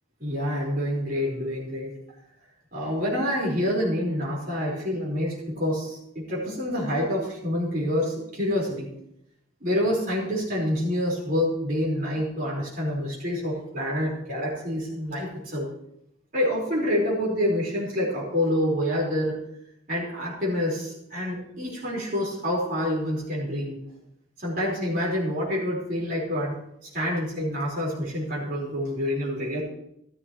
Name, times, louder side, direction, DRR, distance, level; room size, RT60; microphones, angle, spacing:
voice 1, 0.2-1.9 2.7-8.9 9.6-15.7 16.3-19.4 19.9-23.8 24.4-26.5 26.9-29.6, left 1 dB, 45° right, -5 dB, 4.7 m, -27 dB
14.5 x 13.5 x 3.1 m, 0.78 s
head